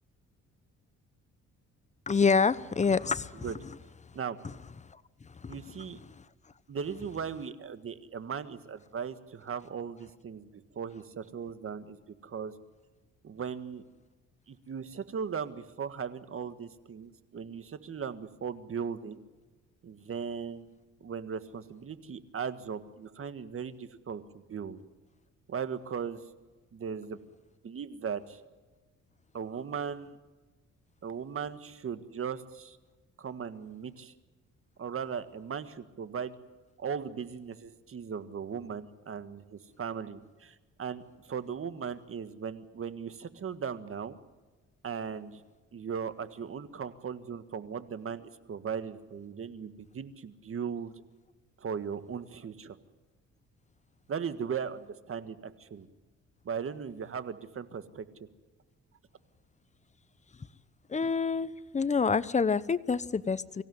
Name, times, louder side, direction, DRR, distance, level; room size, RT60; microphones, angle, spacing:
voice 1, 2.1-3.5 4.8-5.6 6.0-6.2 60.9-63.6, left 5 dB, 25° left, 16 dB, 0.9 m, -28 dB
voice 2, 5.5-6.0 6.7-12.5 13.2-13.8 14.5-19.2 19.8-20.7 21.0-24.2 24.5-24.8 25.5-26.2 26.7-27.2 27.6-28.4 29.3-30.2 31.0-32.8 33.2-34.1 34.8-36.3 36.8-44.2 44.8-45.4 45.7-50.9 51.6-52.8 54.1-55.9 56.4-58.1, right 7 dB, 45° right, 11 dB, 1.7 m, -38 dB
24.5 x 16.0 x 9.5 m, 1.3 s
cardioid pair, 90°, 30 cm